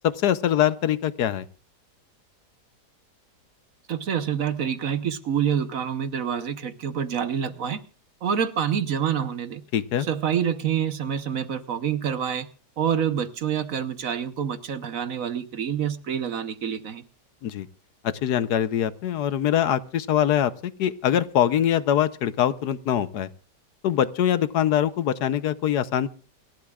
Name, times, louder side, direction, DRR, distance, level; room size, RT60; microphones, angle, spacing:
voice 1, 0.0-1.4 9.7-10.1 17.4-17.7 18.0-23.3 23.8-26.1, left 10 dB, 70° left, 1.3 m, -23 dB
voice 2, 3.9-7.8 8.2-9.6 10.0-12.5 12.8-17.0, right 8 dB, 55° right, 1.3 m, -27 dB
28.5 x 12.0 x 2.4 m
omnidirectional pair, 1.8 m